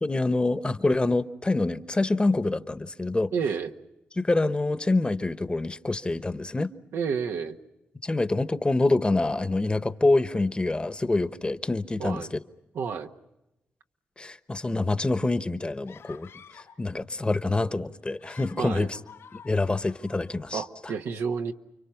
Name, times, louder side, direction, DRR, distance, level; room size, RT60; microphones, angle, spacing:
voice 1, 0.0-3.3 4.2-6.7 8.0-12.4 14.2-16.3 16.8-19.0 19.3-20.9, left 2 dB, 25° left, 1.1 m, -26 dB
voice 2, 3.3-3.7 6.9-7.6 12.0-12.3 12.7-13.1 18.6-18.9 20.5-21.5, right 6 dB, 90° right, 1.4 m, -30 dB
sound 1, 15.9-16.8 18.0-20.4, left 7 dB, 85° left, 3.6 m, -50 dB
30.0 x 24.0 x 5.9 m
cardioid pair, 65°, 4 cm